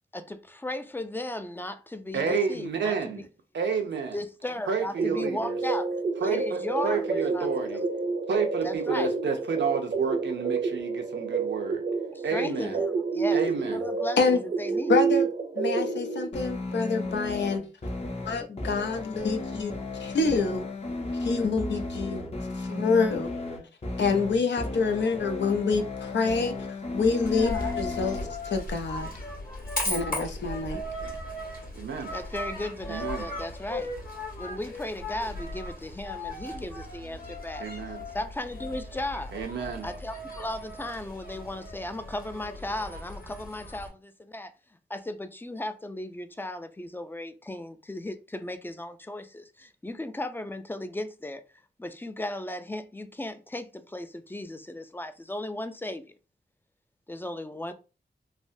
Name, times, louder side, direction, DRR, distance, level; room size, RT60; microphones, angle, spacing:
voice 1, 0.1-3.3 4.1-5.9 6.2-7.8 8.6-9.1 12.1-15.0 32.1-33.9 34.4-37.7 38.1-39.3 39.8-44.5 44.9-51.4 51.8-56.2 57.1-57.7, left 1 dB, 10° left, 0.3 m, -36 dB
voice 2, 2.1-3.2 3.5-4.2 4.7-5.5 6.2-7.8 8.3-11.8 12.2-12.8 13.3-13.9 31.7-32.1 32.9-33.3 37.6-38.0 39.3-39.9, right 5 dB, 90° right, 0.6 m, -30 dB
sound 1, 5.0-16.2, right 4 dB, 45° right, 0.5 m, -29 dB
voice 3, 14.9-15.3 15.6-17.7 18.3-19.7 20.0-20.6 21.2-22.2 22.6-23.3 24.0-26.7 26.9-29.1 29.9-30.8, left 4 dB, 85° left, 0.6 m, -27 dB
sound 2, 16.3-28.3, left 2 dB, 35° left, 0.7 m, -34 dB
Coin (dropping), 27.2-43.9, left 2 dB, 55° left, 1.6 m, -37 dB
3.3 x 2.1 x 2.6 m
wide cardioid pair, 75°, 18 cm